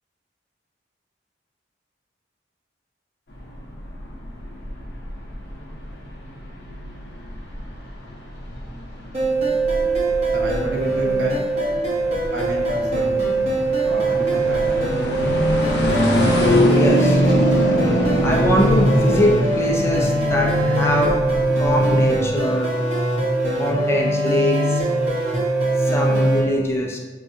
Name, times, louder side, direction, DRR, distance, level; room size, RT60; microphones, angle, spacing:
sound 1, 3.3-22.3, equal, 60° left, 0.7 m, -23 dB
sound 2, 9.1-26.4, right 2 dB, 35° right, 0.9 m, -22 dB
voice 1, 10.3-11.4 12.3-13.2 13.8-15.4, right 1 dB, 80° right, -1 dB, 0.8 m, -29 dB
voice 2, 16.4-17.2 17.6-21.1 21.5-22.7 23.5-24.9 25.7-27.0, equal, 15° left, -1 dB, 0.4 m, -23 dB
5.2 x 2.4 x 2.6 m, 1.3 s
head